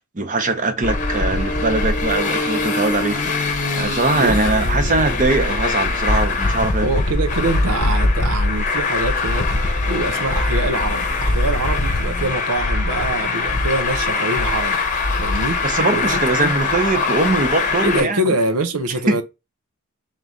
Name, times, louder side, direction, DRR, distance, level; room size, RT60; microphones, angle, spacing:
voice 1, 0.1-3.2 3.7-6.9 15.6-18.2 19.1-19.2, right 2 dB, 35° right, 0.8 m, -21 dB
Traffic noise roadway noise, 0.8-18.0, left 3 dB, 35° left, 0.9 m, -21 dB
voice 2, 6.8-9.5 9.9-14.8 15.2-15.6 15.9-16.6 17.8-19.2, right 2 dB, 90° right, 0.8 m, -24 dB
3.8 x 3.1 x 3.8 m
head